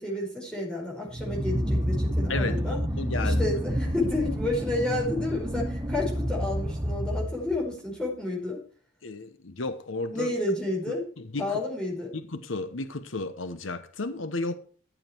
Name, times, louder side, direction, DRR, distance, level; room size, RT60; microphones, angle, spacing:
voice 1, 0.0-2.8 3.2-8.6 10.1-11.1 11.4-12.1, left 2 dB, 5° left, 5.1 m, -30 dB
sound 1, 1.1-7.7, equal, 20° right, 1.3 m, -29 dB
voice 2, 2.3-3.4 9.0-10.3 11.2-11.6 12.1-14.6, left 2 dB, 80° left, 1.0 m, -33 dB
15.0 x 7.4 x 4.6 m
head